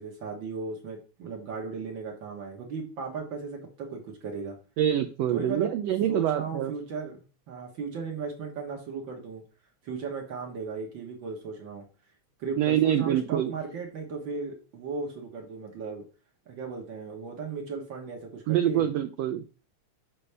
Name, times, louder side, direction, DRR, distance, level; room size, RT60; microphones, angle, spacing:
voice 1, 0.0-4.6 5.3-9.4 9.8-11.8 12.4-16.0 16.5-18.8, right 4 dB, 60° right, 2 dB, 1.2 m, -36 dB
voice 2, 4.8-6.7 12.6-13.5 18.5-19.4, right 11 dB, 85° right, 7 dB, 1.4 m, -25 dB
6.8 x 5.4 x 3.3 m, 0.35 s
omnidirectional pair, 3.4 m